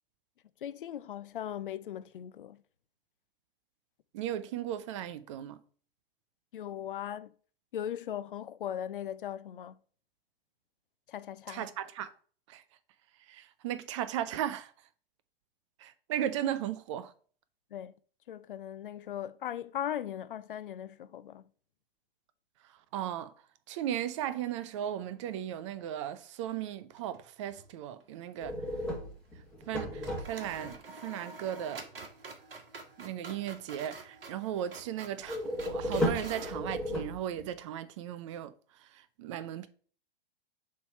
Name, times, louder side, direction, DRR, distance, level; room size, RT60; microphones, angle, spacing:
voice 1, 0.6-2.6 6.5-7.3 7.7-9.7 11.1-11.7 17.7-17.9 18.3-21.4, left 10 dB, 60° left, 0.5 m, -38 dB
voice 2, 4.1-5.6 11.5-12.1 12.5-12.6 13.3-14.7 15.8-17.1 22.9-23.3 23.7-28.6 29.7-31.9 33.0-39.7, right 11 dB, 35° right, 0.4 m, -36 dB
sound 1, 26.9-27.7 28.0-28.1 29.6-29.7 30.0-36.6, right 3 dB, 70° right, 1.2 m, -47 dB
sound 2, 28.4-30.7 35.3-37.6, left 1 dB, 5° left, 1.5 m, -34 dB
6.8 x 3.3 x 4.4 m
figure-of-eight pair, 105°, 29 cm